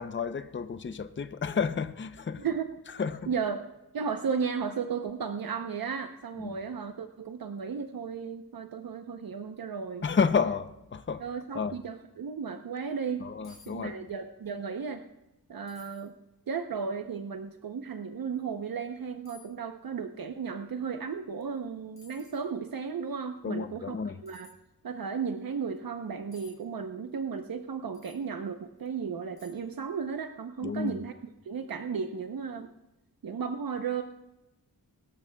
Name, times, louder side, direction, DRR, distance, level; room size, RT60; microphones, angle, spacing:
voice 1, 0.0-2.5 3.0-3.3 6.4-6.6 10.0-11.2 11.5-11.8 13.2-14.1 23.4-24.2 30.6-31.0, left 5 dB, 30° left, 0.6 m, -31 dB
voice 2, 2.4-2.7 3.3-3.6 3.9-10.1 11.2-13.3 13.7-15.0 15.5-16.1 16.5-24.0 24.2-24.5 24.8-31.2 31.4-32.7 33.2-34.0, right 6 dB, 65° right, 0.8 m, -34 dB
sound 1, 13.4-13.7 14.0-14.6 14.9-15.0 15.7-16.1 16.7-16.8 18.3-18.5 19.3-19.5 21.4-21.6 22.0-22.5 24.3-24.6 26.3-26.6 27.9-28.2 28.8-28.9 29.4-29.8 30.1-30.2, left 5 dB, 55° left, 3.3 m, -56 dB
23.5 x 13.0 x 2.3 m
wide cardioid pair, 140°, 38 cm